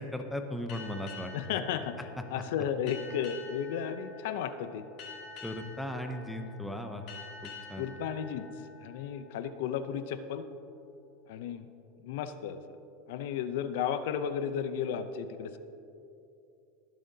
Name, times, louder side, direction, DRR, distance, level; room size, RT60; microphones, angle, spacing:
voice 1, 0.0-1.3 5.4-7.1 7.4-7.8, left 1 dB, ahead, 4 dB, 0.6 m, -37 dB
sound 1, 0.7-9.8, left 5 dB, 45° left, 2.3 m, -48 dB
voice 2, 1.3-2.0 2.3-4.8 7.7-10.5 11.3-11.7 12.0-12.8 13.1-15.6, left 8 dB, 65° left, 10 dB, 0.6 m, -34 dB
21.5 x 7.4 x 2.8 m, 2.7 s
supercardioid pair, 160°, 0 cm